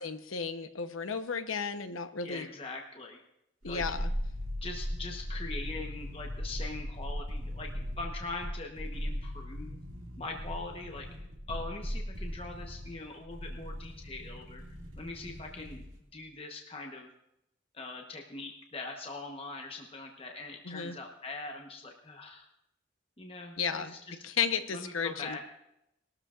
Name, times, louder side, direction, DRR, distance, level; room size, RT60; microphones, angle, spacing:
voice 1, 0.0-2.5 3.6-4.1 20.6-21.0 23.6-23.9 24.2-25.4, left 6 dB, 90° left, 9 dB, 0.9 m, -33 dB
voice 2, 2.2-3.2 3.6-3.8 4.6-9.8 10.2-11.1 11.5-14.6 15.0-15.8 16.1-17.1 17.7-22.5 23.2-24.1 24.7-25.4, left 3 dB, 30° left, 2 dB, 1.0 m, -42 dB
sound 1, 3.6-16.0 16.3-16.4, equal, 90° right, 2.2 m, -38 dB
20.5 x 13.0 x 2.5 m, 0.83 s
head